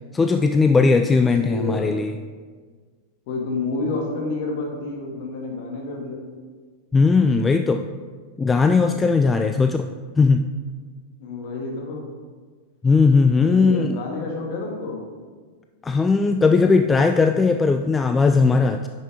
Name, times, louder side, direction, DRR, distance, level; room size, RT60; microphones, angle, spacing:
voice 1, 0.1-2.2 6.9-7.8 8.4-9.8 10.2-10.5 12.8-14.0 15.8-18.9, left 4 dB, 15° left, 6 dB, 0.3 m, -18 dB
voice 2, 1.5-2.0 3.3-6.2 11.2-12.1 13.4-15.0, left 3 dB, 45° left, 0 dB, 1.7 m, -29 dB
9.6 x 6.2 x 3.4 m, 1.5 s
figure-of-eight pair, 90°, 0 cm